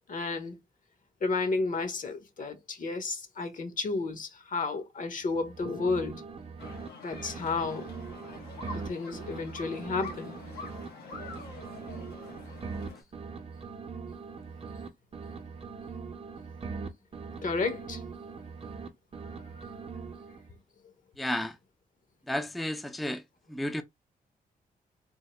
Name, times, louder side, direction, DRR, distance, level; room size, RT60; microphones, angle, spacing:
voice 1, 0.1-0.6 1.2-6.2 7.0-7.9 8.7-10.3 17.4-18.0 19.6-19.7, left 3 dB, 55° left, 1.0 m, -32 dB
sound 1, 5.2-6.9 7.1-10.9 11.1-14.9 15.1-18.9 19.1-20.5, right 5 dB, 35° right, 0.7 m, -41 dB
sound 2, 6.6-13.0, left 3 dB, 85° left, 1.0 m, -46 dB
voice 2, 21.2-21.6 22.3-23.2 23.5-23.8, left 1 dB, ahead, 0.5 m, -32 dB
3.7 x 2.0 x 3.1 m
cardioid pair, 70°, 16 cm